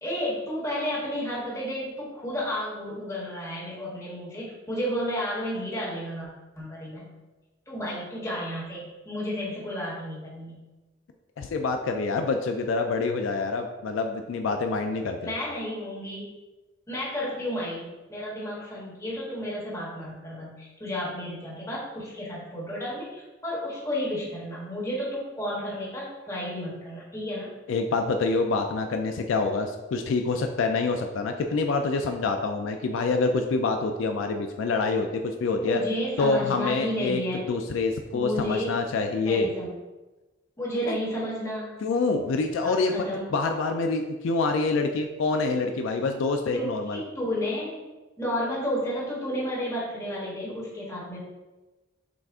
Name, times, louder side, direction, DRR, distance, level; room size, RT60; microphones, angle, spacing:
voice 1, 0.0-6.3 6.5-7.1 7.7-10.6 15.2-16.4 16.9-27.5 35.6-37.5 38.1-38.8 39.2-39.7 40.6-41.7 42.6-43.2 46.5-47.8 48.2-51.2, equal, 15° left, -7 dB, 1.4 m, -32 dB
voice 2, 11.4-15.3 27.7-35.8 36.2-37.2 37.5-39.5 40.9-41.0 41.8-42.9 43.3-47.0, left 3 dB, 75° left, 5 dB, 0.3 m, -26 dB
6.0 x 2.4 x 3.5 m, 1.1 s
head